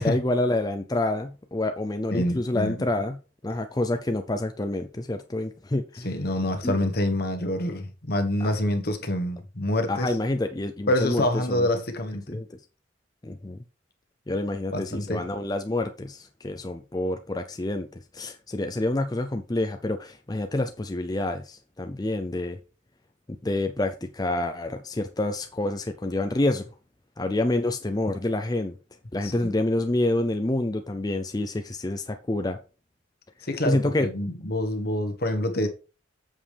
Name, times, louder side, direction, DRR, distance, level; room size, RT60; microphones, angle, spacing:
voice 1, 0.0-3.2 3.4-6.1 6.6-6.8 8.4-8.5 9.9-11.7 12.3-12.5 13.2-13.6 14.3-17.9 18.1-22.6 23.4-26.6 27.2-28.7 29.1-32.6 33.6-34.1, left 2 dB, 20° left, 0.5 m, -27 dB
voice 2, 2.1-2.7 6.0-10.2 10.9-12.5 14.7-15.3 29.2-29.5 33.4-35.7, left 1 dB, 55° left, 1.4 m, -27 dB
8.4 x 7.4 x 3.4 m
head